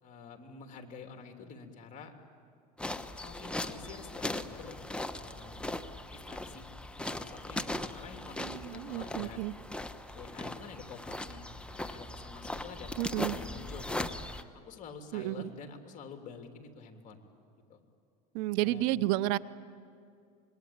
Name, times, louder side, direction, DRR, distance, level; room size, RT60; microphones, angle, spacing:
voice 1, 0.0-2.1 3.2-4.8 5.1-5.8 6.1-6.6 7.1-9.4 10.1-14.1 14.5-17.2 17.7-17.8 18.6-18.9, left 5 dB, 40° left, 4 dB, 3.0 m, -48 dB
sound 1, 2.8-14.4, left 1 dB, 5° left, 1.0 m, -39 dB
voice 2, 8.4-9.5 13.0-13.4 15.1-15.5 18.3-19.4, right 16 dB, 75° right, 18 dB, 0.7 m, -31 dB
26.0 x 22.0 x 8.8 m, 2.4 s
supercardioid pair, 110°, 19 cm